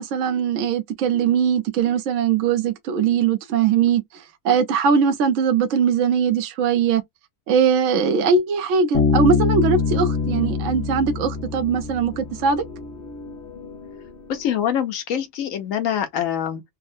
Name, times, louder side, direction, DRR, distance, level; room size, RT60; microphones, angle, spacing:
voice 1, 0.0-4.0 4.4-7.0 7.5-12.6, right 6 dB, 70° right, 0.9 m, -20 dB
Bass guitar, 8.9-12.5, left 4 dB, 10° left, 0.8 m, -23 dB
sound 1, 9.5-14.7, left 3 dB, 55° left, 1.4 m, -40 dB
voice 2, 14.3-16.6, left 9 dB, 75° left, 1.0 m, -24 dB
3.5 x 2.1 x 2.5 m
omnidirectional pair, 1.4 m